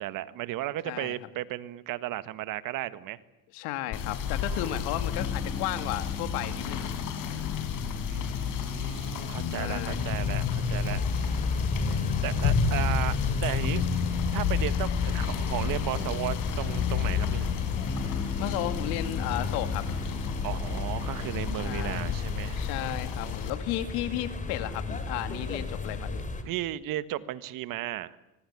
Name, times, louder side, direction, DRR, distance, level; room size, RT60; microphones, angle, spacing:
voice 1, 0.0-3.2 4.5-4.8 8.1-11.0 12.2-13.8 14.3-17.5 20.4-22.6 26.5-28.2, right 14 dB, 65° right, 14 dB, 1.7 m, -35 dB
voice 2, 0.8-1.2 3.5-6.9 9.5-10.0 18.4-19.9 21.6-22.1 22.5-26.3, left 14 dB, 85° left, 10 dB, 2.7 m, -34 dB
Rain / Motor vehicle (road), 3.9-23.5, left 7 dB, 60° left, 5.5 m, -32 dB
sound 1, 5.1-22.1, left 5 dB, 35° left, 7.0 m, -39 dB
sound 2, 9.9-26.4, left 3 dB, 20° left, 4.2 m, -33 dB
25.0 x 22.5 x 8.6 m, 0.93 s
cardioid pair, 115°, 36 cm